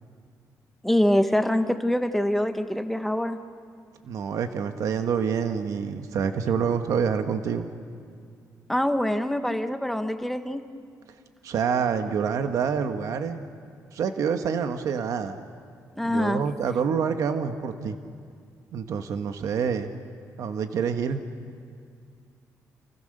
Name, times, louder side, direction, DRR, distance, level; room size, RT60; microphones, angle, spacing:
voice 1, 0.8-3.4 8.7-10.6 16.0-16.4, left 1 dB, 5° left, 8 dB, 0.9 m, -24 dB
voice 2, 4.0-7.7 11.4-13.5 13.9-15.4 16.0-18.0 18.7-19.9 20.4-21.2, right 6 dB, 60° right, 7 dB, 1.2 m, -27 dB
29.0 x 29.0 x 6.6 m, 2.2 s
cardioid pair, 175°, 6 cm